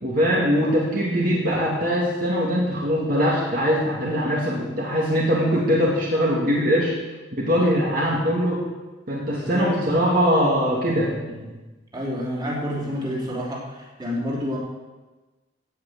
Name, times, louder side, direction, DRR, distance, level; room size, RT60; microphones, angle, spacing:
voice 1, 0.0-6.9 7.3-8.6 9.1-11.5, equal, 50° right, -4 dB, 2.3 m, -22 dB
voice 2, 9.3-9.7 11.9-13.6 14.0-14.6, equal, 25° right, -4 dB, 3.4 m, -28 dB
16.5 x 5.9 x 8.1 m, 1.2 s
head